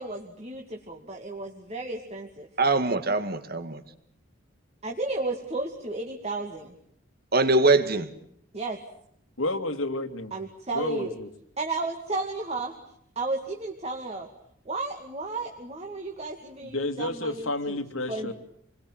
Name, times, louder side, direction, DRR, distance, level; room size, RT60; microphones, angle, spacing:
voice 1, 0.0-2.5 4.8-6.8 8.5-8.8 10.3-11.1 11.6-12.7 13.2-14.3 14.7-17.8 18.1-18.3, right 3 dB, 30° right, 2 dB, 2.4 m, -33 dB
voice 2, 2.6-3.8 7.3-8.1, right 3 dB, 50° right, 10 dB, 2.2 m, -22 dB
voice 3, 9.4-10.4 10.7-11.3 16.6-18.3, left 2 dB, 90° left, 6 dB, 2.6 m, -30 dB
28.5 x 22.0 x 9.0 m, 0.69 s
head